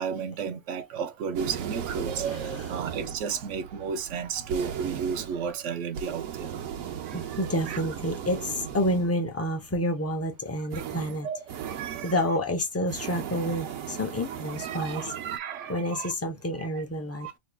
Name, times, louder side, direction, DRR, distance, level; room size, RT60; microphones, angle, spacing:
voice 1, 0.0-6.7 7.0-7.4 7.7-7.8 10.7-10.8 11.2-12.1 14.6-16.1 16.7-16.8 17.2-17.3, right 6 dB, 70° right, 0.9 m, -33 dB
sound 1, 1.4-9.3 10.7-12.3 12.8-15.4, right 8 dB, 90° right, 1.1 m, -37 dB
voice 2, 7.1-11.3 12.0-15.1 15.7-17.3, equal, 20° left, 0.4 m, -29 dB
3.5 x 3.0 x 2.2 m
omnidirectional pair, 1.4 m